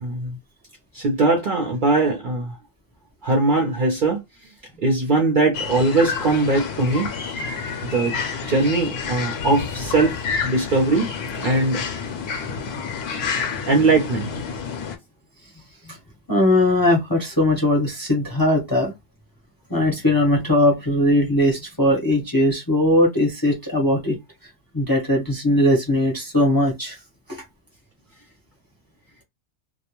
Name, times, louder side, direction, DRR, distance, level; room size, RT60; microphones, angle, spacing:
voice 1, 0.0-0.4 0.9-2.6 3.2-4.2 4.8-7.1 7.9-8.2 8.5-10.1 10.4-11.1 11.4-11.8 13.7-14.3, right 3 dB, 55° right, 0.6 m, -20 dB
sound 1, 5.5-15.0, left 6 dB, 60° left, 0.8 m, -29 dB
voice 2, 16.3-18.9 19.7-24.2 24.7-27.0 27.3-27.4, left 1 dB, 20° left, 0.6 m, -19 dB
2.3 x 2.1 x 2.9 m
omnidirectional pair, 1.3 m